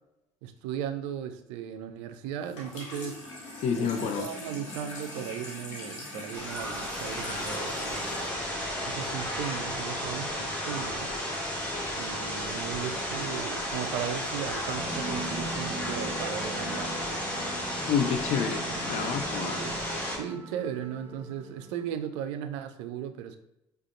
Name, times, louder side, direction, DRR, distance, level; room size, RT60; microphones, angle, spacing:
voice 1, 0.4-3.2 3.8-8.2 8.8-11.1 12.0-16.9 18.3-18.4 18.7-19.1 19.4-19.8 20.2-23.4, right 9 dB, 70° right, 8 dB, 0.4 m, -37 dB
Water tap faucet / Sink (filling or washing), 2.4-9.5, left 2 dB, 75° left, 1.0 m, -42 dB
voice 2, 3.6-4.3 17.9-19.6, left 7 dB, 45° left, 6 dB, 0.4 m, -29 dB
sound 1, 6.3-20.2, equal, 10° left, 1.4 m, -33 dB
sound 2, 14.8-22.0, right 2 dB, 15° right, 0.5 m, -41 dB
4.9 x 2.3 x 2.6 m, 0.88 s
figure-of-eight pair, 55°, 16 cm